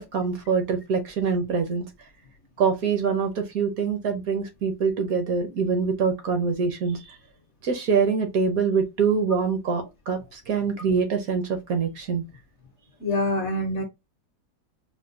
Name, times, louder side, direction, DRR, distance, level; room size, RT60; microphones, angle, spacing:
voice 1, 0.0-1.9 2.6-7.2 7.6-12.2, right 5 dB, 65° right, 1.0 m, -25 dB
voice 2, 13.0-13.8, left 1 dB, 55° left, 0.8 m, -25 dB
4.4 x 2.2 x 2.4 m
omnidirectional pair, 1.9 m